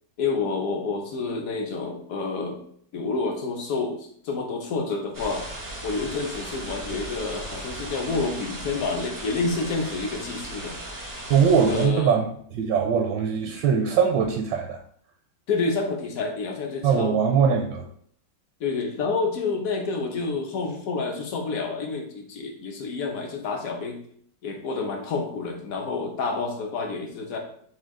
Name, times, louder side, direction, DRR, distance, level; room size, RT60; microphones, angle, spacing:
voice 1, 0.2-2.6 2.9-5.4 5.8-10.8 11.7-12.1 15.5-17.2 18.6-24.0 24.4-27.4, left 4 dB, 60° left, 3 dB, 1.0 m, -29 dB
sound 1, 5.1-11.9, right 1 dB, 30° right, 0.3 m, -37 dB
voice 2, 11.3-12.3 12.5-14.8 16.8-17.9, right 6 dB, 75° right, 2 dB, 1.2 m, -21 dB
6.2 x 2.3 x 3.6 m, 0.62 s
omnidirectional pair, 2.0 m